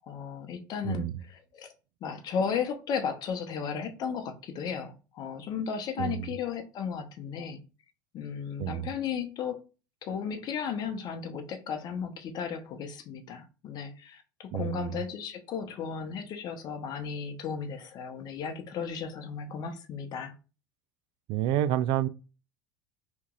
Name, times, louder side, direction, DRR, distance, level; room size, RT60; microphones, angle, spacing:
voice 1, 0.1-1.7 2.0-7.6 8.1-9.6 10.0-20.3, left 6 dB, 45° left, 0.8 m, -35 dB
voice 2, 6.0-6.3 8.6-8.9 14.5-15.0 21.3-22.1, right 12 dB, 55° right, 0.3 m, -29 dB
3.0 x 2.5 x 3.7 m
hypercardioid pair, 80°, 10 cm